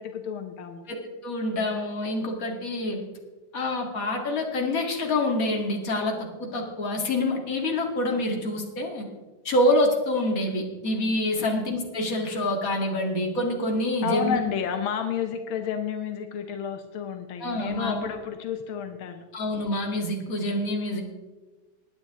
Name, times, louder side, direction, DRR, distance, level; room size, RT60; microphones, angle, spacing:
voice 1, 0.0-0.9 11.4-11.6 14.0-19.3, left 7 dB, 85° left, 6 dB, 1.7 m, -31 dB
voice 2, 0.9-3.0 3.5-9.1 9.4-14.4 17.4-18.0 19.3-21.0, left 1 dB, 45° left, 1 dB, 2.4 m, -26 dB
20.5 x 9.2 x 3.6 m, 1.2 s
omnidirectional pair, 2.2 m